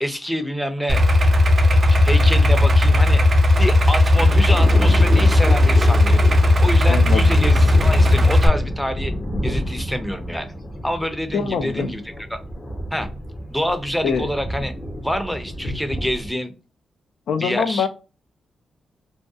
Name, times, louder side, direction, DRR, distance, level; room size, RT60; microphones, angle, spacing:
voice 1, 0.0-1.0 2.0-3.2 3.6-6.2 6.6-9.1 9.4-10.5 10.8-12.0 12.3-12.4 12.9-13.1 13.5-14.7 15.0-16.5 17.4-17.9, equal, 5° left, 9 dB, 0.6 m, -26 dB
Idling, 0.9-8.5, left 2 dB, 50° right, 0.5 m, -15 dB
sound 1, 3.5-16.3, equal, 40° left, 0.7 m, -29 dB
voice 2, 6.9-7.2 11.3-11.9 14.0-14.3 17.3-17.9, left 6 dB, 80° left, 9 dB, 0.4 m, -23 dB
2.7 x 2.2 x 2.3 m, 0.32 s
supercardioid pair, 55°, 0 cm